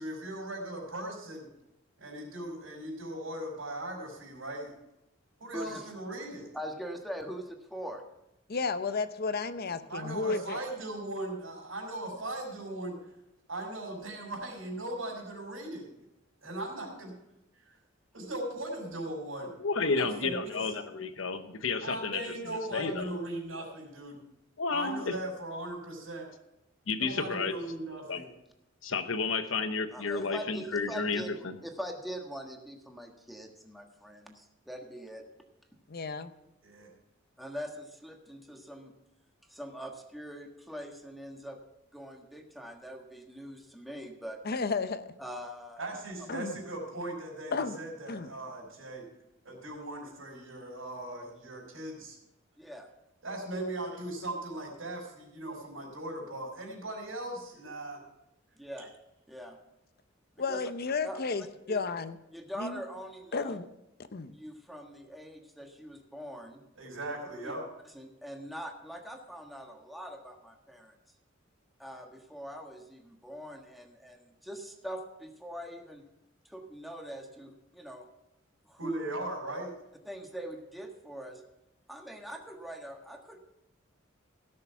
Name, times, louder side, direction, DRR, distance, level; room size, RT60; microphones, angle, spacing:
voice 1, 0.0-1.5 2.0-4.7 5.4-6.5 9.9-13.0 13.5-15.9 16.4-17.1 17.6-17.8 18.1-19.5 19.8-20.6 21.8-24.2 24.7-26.3 27.0-28.3 36.6-36.9 45.8-49.1 49.4-52.2 53.2-58.0 66.8-67.6 78.8-79.7, right 1 dB, 85° right, -6 dB, 4.8 m, -38 dB
voice 2, 5.5-5.9 6.5-8.0 29.9-31.3 31.6-35.3 37.4-38.9 39.5-41.6 41.9-44.4 45.2-45.8 52.6-52.9 58.6-58.9 59.3-59.6 60.5-60.6 61.0-61.8 62.3-63.6 64.3-66.6 67.9-70.9 71.8-76.0 76.4-78.1 78.6-79.0 80.0-81.4 81.9-83.4, equal, ahead, 2 dB, 1.4 m, -43 dB
voice 3, 8.5-10.6 35.9-36.3 44.4-45.1 46.3-46.6 47.5-47.8 48.1-48.3 60.4-62.2 62.6-62.8 63.3-63.7 64.1-64.3, left 4 dB, 50° left, 11 dB, 0.7 m, -32 dB
voice 4, 19.6-23.2 24.6-25.1 26.9-27.5 28.1-28.2 28.8-31.6, left 4 dB, 80° left, 9 dB, 1.0 m, -32 dB
16.5 x 6.7 x 5.7 m, 0.88 s
head